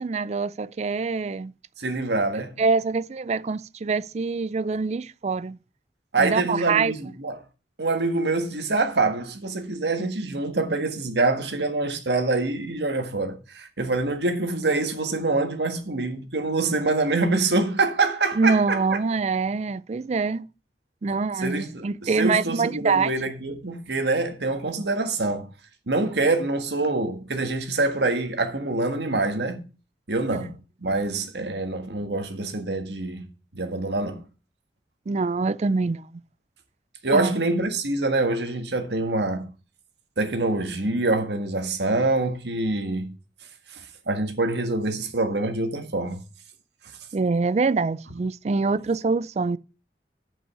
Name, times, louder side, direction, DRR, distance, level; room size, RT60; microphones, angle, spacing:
voice 1, 0.0-1.5 2.6-5.6 6.2-6.9 18.4-20.5 21.0-23.1 30.3-30.4 35.1-36.2 37.1-37.4 47.1-49.6, right 4 dB, 40° right, 0.4 m, -25 dB
voice 2, 1.8-2.6 6.1-7.4 7.8-19.0 21.1-21.2 21.4-25.5 25.9-29.6 30.1-30.5 30.8-33.3 33.6-34.2 37.0-39.5 40.2-43.1 43.7-46.2, right 2 dB, 75° right, 1.6 m, -25 dB
8.3 x 5.6 x 7.0 m
head